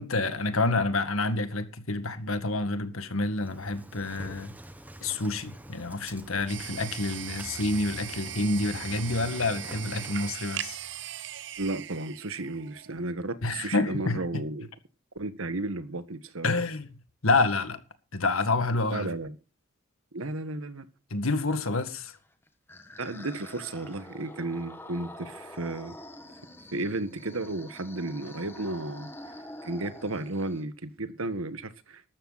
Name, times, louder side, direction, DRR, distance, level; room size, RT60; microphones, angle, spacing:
voice 1, 0.0-4.5 5.0-10.8 13.4-14.4 16.4-17.0 17.2-17.8 18.1-19.1 21.1-22.1, left 2 dB, 90° left, 1.9 m, -28 dB
Engine starting, 3.4-10.3, right 1 dB, 10° right, 1.1 m, -46 dB
sound 1, 6.5-13.1, right 12 dB, 55° right, 0.6 m, -39 dB
voice 2, 11.6-14.7 15.1-16.6 18.9-19.3 20.1-20.9 23.0-25.9 26.7-29.1 29.6-32.1, right 2 dB, 85° right, 1.6 m, -33 dB
sound 2, 22.2-30.6, left 1 dB, 10° left, 1.6 m, -46 dB
14.0 x 12.5 x 4.2 m
head